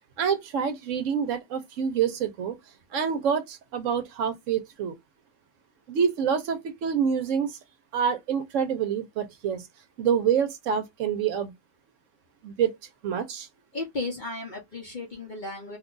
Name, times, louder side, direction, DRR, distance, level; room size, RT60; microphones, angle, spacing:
voice 1, 0.2-2.6 2.9-4.9 5.9-7.6 7.9-9.7 10.0-11.5 12.4-12.7 13.0-13.5, right 7 dB, 70° right, 0.9 m, -27 dB
voice 2, 13.7-15.8, left 2 dB, 45° left, 0.7 m, -34 dB
2.6 x 2.3 x 3.7 m
omnidirectional pair, 1.5 m